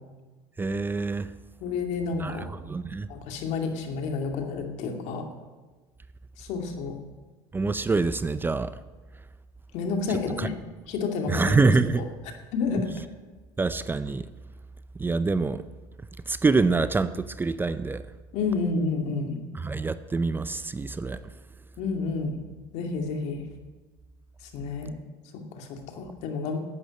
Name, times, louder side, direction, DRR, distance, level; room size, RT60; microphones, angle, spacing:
voice 1, 0.6-1.3 2.2-3.1 7.5-8.8 10.1-10.5 11.3-12.0 13.6-14.3 15.0-15.6 16.3-18.0 19.5-21.2, right 3 dB, 15° right, 13 dB, 0.6 m, -26 dB
voice 2, 1.6-2.5 3.1-5.2 6.4-6.9 9.7-10.5 10.9-12.1 12.5-12.9 18.3-19.4 21.8-22.4 22.7-23.4 24.5-24.9 25.3-26.6, left 4 dB, 65° left, 4 dB, 2.4 m, -30 dB
11.0 x 8.9 x 9.8 m, 1.3 s
supercardioid pair, 100°, 12 cm